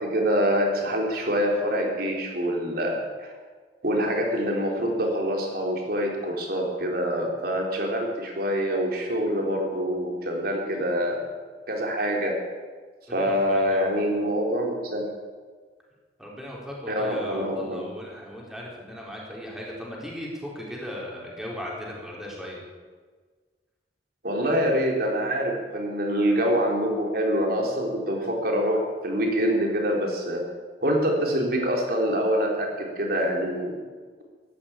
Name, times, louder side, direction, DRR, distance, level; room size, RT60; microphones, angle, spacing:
voice 1, 0.0-3.3 3.8-11.2 11.7-12.4 13.1-15.1 16.9-17.9 24.2-30.4 30.8-33.7, equal, 60° right, 0 dB, 3.7 m, -25 dB
voice 2, 13.1-13.9 16.2-22.6, equal, 5° right, -3 dB, 4.0 m, -37 dB
14.5 x 11.5 x 8.7 m, 1.5 s
head